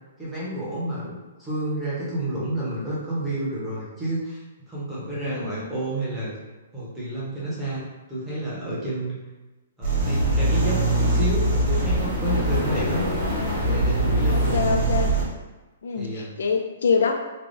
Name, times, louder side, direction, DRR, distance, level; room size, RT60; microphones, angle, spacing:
voice 1, 0.2-6.3 6.7-9.2 9.8-13.1 13.6-14.6 16.0-16.3, right 1 dB, 5° right, -9 dB, 0.7 m, -30 dB
voice 2, 5.1-5.7 13.2-13.6 14.3-15.1 15.8-17.2, left 5 dB, 70° left, 3 dB, 0.3 m, -26 dB
sound 1, 9.8-15.2, right 1 dB, 40° right, 1.4 m, -22 dB
3.3 x 2.1 x 2.5 m, 1.1 s
hypercardioid pair, 175°, 0 cm